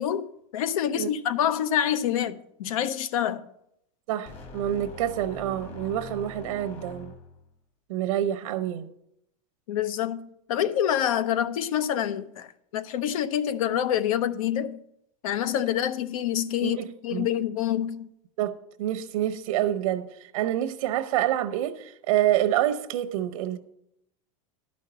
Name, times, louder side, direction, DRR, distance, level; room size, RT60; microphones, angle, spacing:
voice 1, 0.0-3.4 9.7-14.8 15.2-18.1, left 10 dB, 85° left, 0.7 m, -27 dB
voice 2, 4.1-7.1 7.9-8.9 16.6-17.3 18.4-23.6, right 12 dB, 85° right, 0.8 m, -27 dB
sound 1, 4.3-7.5, left 3 dB, 35° left, 1.4 m, -43 dB
11.5 x 5.2 x 6.8 m
supercardioid pair, 160°, 17 cm